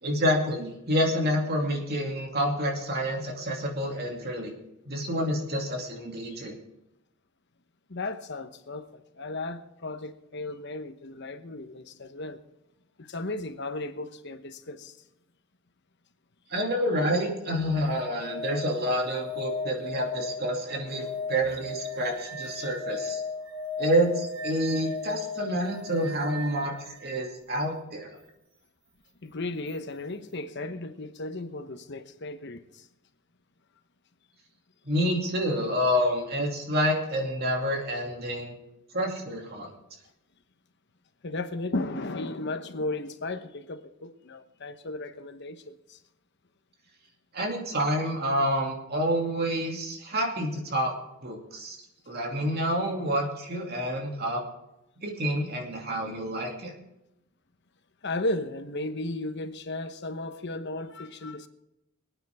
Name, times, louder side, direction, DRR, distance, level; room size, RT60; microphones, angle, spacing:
voice 1, 0.0-4.5 4.9-6.6 16.5-23.2 23.8-26.7 27.0-28.1 34.8-38.5 38.9-39.7 47.3-50.9 51.2-51.8 52.1-54.4 55.0-56.7, equal, 50° right, 2.6 m, -28 dB
voice 2, 7.9-12.4 13.0-15.0 22.6-22.7 29.2-32.9 41.2-46.0 58.0-61.5, left 2 dB, 55° left, 1.1 m, -35 dB
sound 1, 17.5-27.3 29.7-29.8, left 4 dB, 70° right, 4.9 m, -37 dB
25.0 x 9.2 x 3.6 m
head